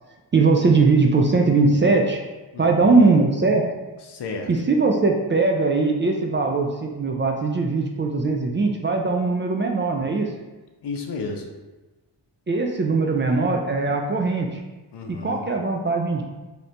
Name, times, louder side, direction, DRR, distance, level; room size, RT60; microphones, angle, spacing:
voice 1, 0.3-2.2 2.6-3.6 4.5-10.3 12.5-14.6 15.1-16.2, right 3 dB, 25° right, 1 dB, 0.4 m, -20 dB
voice 2, 2.5-3.0 4.1-4.5 10.8-11.4 14.9-15.4, left 4 dB, 60° left, 2 dB, 0.6 m, -32 dB
2.8 x 2.6 x 3.3 m, 1.2 s
cardioid pair, 45°, 45 cm